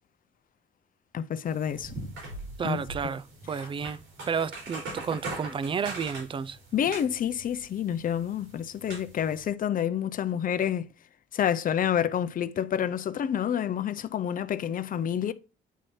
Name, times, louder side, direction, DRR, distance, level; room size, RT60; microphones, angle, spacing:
voice 1, 1.1-1.9 2.6-2.8 6.7-10.9 11.3-15.3, left 9 dB, 45° left, 0.5 m, -28 dB
sound 1, 1.5-9.4, right 2 dB, 85° right, 4.0 m, -41 dB
voice 2, 2.6-4.0 4.3-6.6, right 6 dB, 25° right, 0.3 m, -31 dB
9.1 x 3.2 x 4.2 m
cardioid pair, 90°, 20 cm